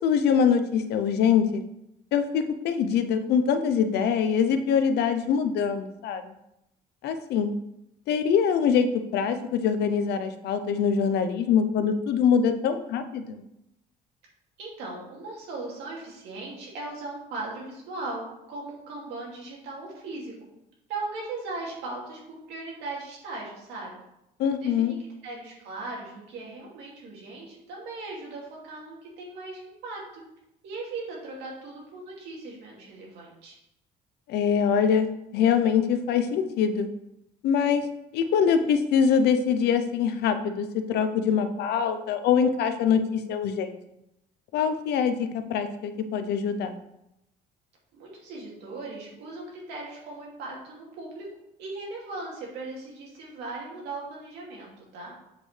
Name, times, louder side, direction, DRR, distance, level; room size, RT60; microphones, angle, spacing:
voice 1, 0.0-1.6 2.1-6.3 7.0-7.5 8.1-13.4 24.4-24.9 34.3-36.9 37.4-37.8 38.1-43.8 44.5-46.7, left 7 dB, 75° left, 9 dB, 0.7 m, -24 dB
voice 2, 14.6-20.3 20.9-24.0 24.6-25.0 25.2-30.2 30.6-33.6 47.9-51.3 51.6-55.1, right 3 dB, 85° right, -3 dB, 2.5 m, -38 dB
7.8 x 5.3 x 3.3 m, 0.85 s
cardioid pair, 110°, 17 cm